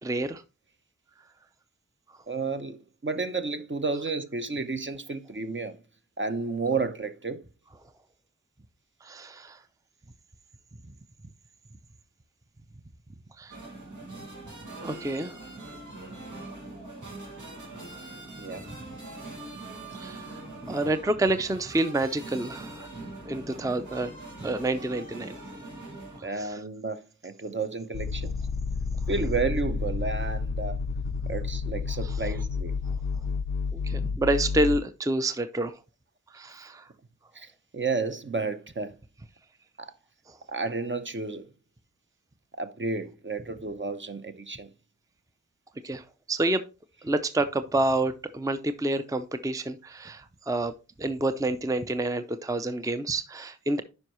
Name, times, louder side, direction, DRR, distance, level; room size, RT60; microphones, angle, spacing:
voice 1, 0.0-0.4 9.0-9.6 13.4-13.6 14.8-15.4 19.9-20.4 20.7-22.9 23.3-24.1 24.4-25.4 26.2-26.6 31.2-31.3 32.0-32.2 33.7-35.8 36.3-36.9 40.3-40.4 45.8-46.6 47.0-50.7 51.0-53.8, right 2 dB, 10° right, 0.5 m, -28 dB
voice 2, 2.3-2.8 3.0-5.8 6.2-7.4 18.4-18.6 26.2-28.4 29.1-30.8 31.3-32.8 37.3-37.5 37.7-38.9 39.8-39.9 40.5-41.5 42.6-44.7, right 4 dB, 40° right, 0.7 m, -31 dB
sound 1, 13.5-26.2, right 2 dB, 85° right, 2.3 m, -42 dB
sound 2, 27.9-34.8, left 4 dB, 80° left, 0.5 m, -30 dB
9.5 x 5.4 x 3.0 m
wide cardioid pair, 65°, 29 cm